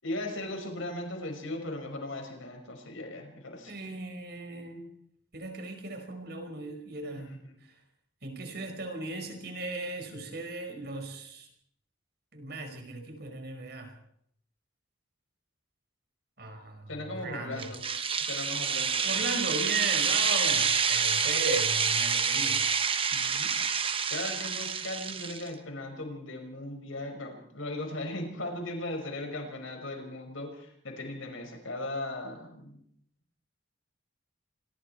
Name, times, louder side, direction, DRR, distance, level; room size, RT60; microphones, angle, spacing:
voice 1, 0.0-3.7 7.3-7.6 16.9-17.8 18.2-19.2 23.1-23.5 24.1-32.8, left 1 dB, 90° left, 4 dB, 5.7 m, -38 dB
voice 2, 3.7-4.9 5.3-7.3 8.2-11.5 12.3-13.9 16.4-17.7 19.0-22.6, right 2 dB, 50° right, 5 dB, 5.1 m, -37 dB
sound 1, 17.6-25.5, right 6 dB, 30° right, 1.3 m, -28 dB
26.5 x 21.5 x 4.5 m, 0.68 s
head